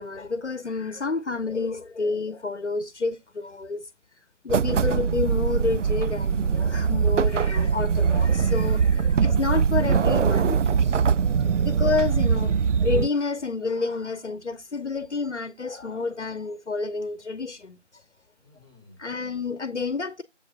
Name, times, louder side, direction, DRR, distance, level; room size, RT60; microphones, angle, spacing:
voice 1, 0.0-3.9 4.4-10.6 11.6-17.8 19.0-20.2, left 4 dB, 70° left, 0.9 m, -29 dB
sound 1, 4.5-13.1, right 6 dB, 90° right, 0.5 m, -22 dB
voice 2, 8.6-9.0 10.6-11.6 18.4-19.0, left 2 dB, 25° right, 2.0 m, -53 dB
7.7 x 3.6 x 5.7 m
figure-of-eight pair, 180°, 36 cm